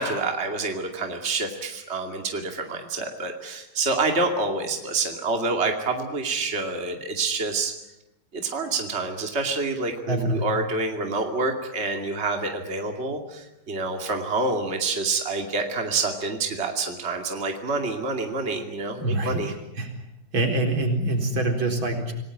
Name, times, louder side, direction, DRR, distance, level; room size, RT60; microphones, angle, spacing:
voice 1, 0.0-7.7 8.3-19.5, right 3 dB, 30° right, 3 dB, 2.7 m, -27 dB
voice 2, 10.1-10.5 19.0-19.9 20.3-22.1, right 2 dB, 70° right, 3 dB, 5.0 m, -25 dB
28.0 x 18.5 x 10.0 m, 0.88 s
omnidirectional pair, 2.2 m